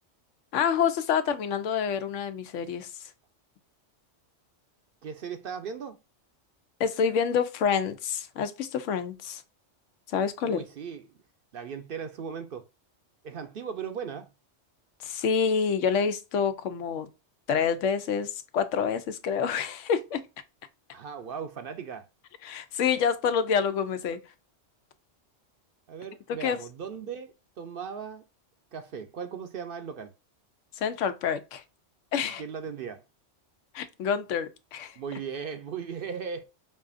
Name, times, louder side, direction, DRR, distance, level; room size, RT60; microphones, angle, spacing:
voice 1, 0.5-2.9 6.8-9.4 10.1-10.6 15.0-17.1 17.5-20.2 22.4-24.2 26.4-26.6 30.8-31.6 32.1-32.4 33.7-34.9, left 7 dB, 90° left, 1.0 m, -27 dB
voice 2, 5.0-6.0 10.4-11.2 11.5-12.7 13.2-14.3 20.9-22.1 25.9-28.2 28.7-30.1 32.2-33.0 35.0-36.4, right 6 dB, 55° right, 0.7 m, -37 dB
5.4 x 2.5 x 2.3 m
omnidirectional pair, 1.2 m